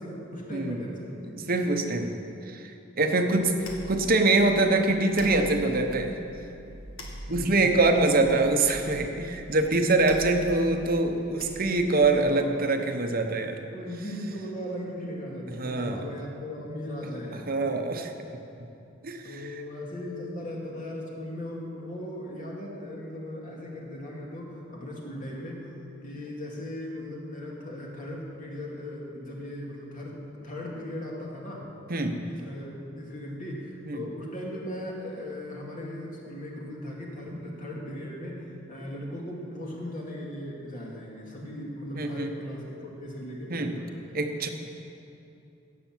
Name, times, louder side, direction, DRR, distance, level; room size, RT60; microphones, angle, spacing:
voice 1, 0.0-1.5 3.1-3.3 7.3-7.8 12.1-12.7 13.7-17.7 19.2-25.7 26.0-30.2 30.4-31.7 32.3-43.8, left 1 dB, 40° left, -3 dB, 2.4 m, -38 dB
voice 2, 1.4-2.7 3.0-3.5 3.9-6.2 7.3-13.6 15.5-16.1 17.5-18.1 19.0-19.4 31.9-32.2 33.9-34.0 37.3-37.4 41.9-42.3 43.5-43.7 44.1-44.5, right 2 dB, 45° right, 5 dB, 1.0 m, -24 dB
sound 1, 3.4-12.0, equal, 90° left, 1.9 m, -44 dB
17.0 x 6.9 x 7.5 m, 2.7 s
head